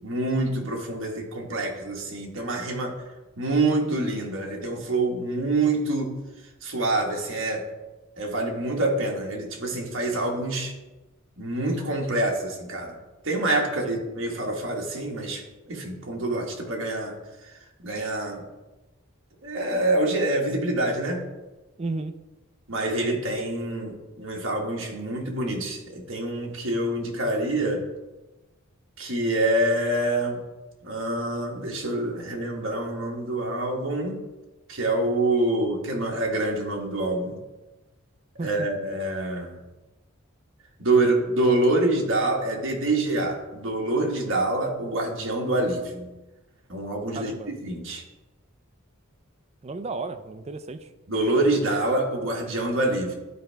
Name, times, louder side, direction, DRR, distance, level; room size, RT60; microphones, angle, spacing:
voice 1, 0.0-3.0 3.4-6.1 6.6-7.7 8.2-10.8 11.4-13.0 13.2-17.1 17.4-18.4 19.4-21.2 22.7-27.9 29.0-30.4 30.8-34.2 34.7-37.4 38.4-39.5 40.8-46.1 46.7-48.0 51.1-53.1, right 2 dB, 60° right, 0 dB, 1.4 m, -26 dB
voice 2, 21.8-22.1 38.4-38.7 47.1-47.5 49.6-50.9, right 3 dB, 30° right, 9 dB, 0.3 m, -33 dB
11.5 x 4.6 x 3.3 m, 1.1 s
head